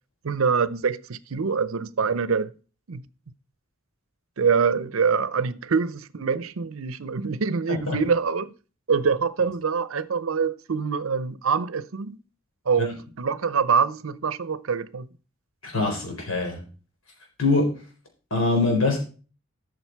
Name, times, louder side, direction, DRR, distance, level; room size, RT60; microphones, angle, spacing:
voice 1, 0.2-2.5 2.9-3.0 4.4-8.5 8.9-12.2 12.7-15.1, right 5 dB, 80° right, 0.6 m, -25 dB
voice 2, 15.6-16.6 17.4-17.7 18.3-19.0, left 3 dB, 85° left, 4.2 m, -23 dB
12.5 x 6.5 x 4.6 m
head